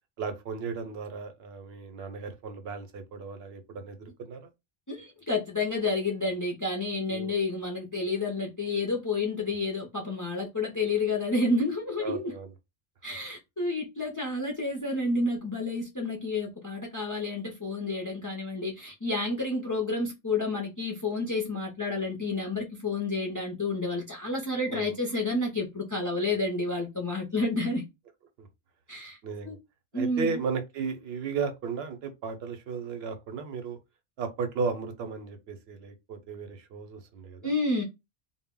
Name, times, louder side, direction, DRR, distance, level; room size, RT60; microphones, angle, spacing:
voice 1, 0.2-4.4 7.1-7.3 12.0-12.5 24.7-25.0 28.4-28.5 29.2-29.6 29.9-33.8 34.2-37.5, right 5 dB, 80° right, 0.8 m, -35 dB
voice 2, 4.9-12.3 13.0-27.8 28.9-29.2 29.5-29.6 29.9-30.4 37.4-37.8, left 2 dB, 30° left, 0.3 m, -30 dB
2.1 x 2.0 x 3.6 m
omnidirectional pair, 1.0 m